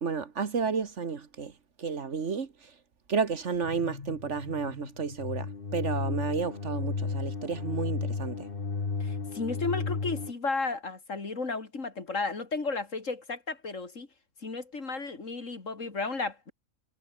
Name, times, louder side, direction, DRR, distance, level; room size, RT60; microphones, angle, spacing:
voice 1, 0.0-1.5 1.8-2.5 3.1-8.5, right 5 dB, 60° right, 1.7 m, -31 dB
sound 1, 3.6-10.3, left 4 dB, 40° left, 1.9 m, -34 dB
voice 2, 9.0-14.1 14.4-16.5, left 3 dB, 65° left, 3.2 m, -33 dB
omnidirectional pair, 1.4 m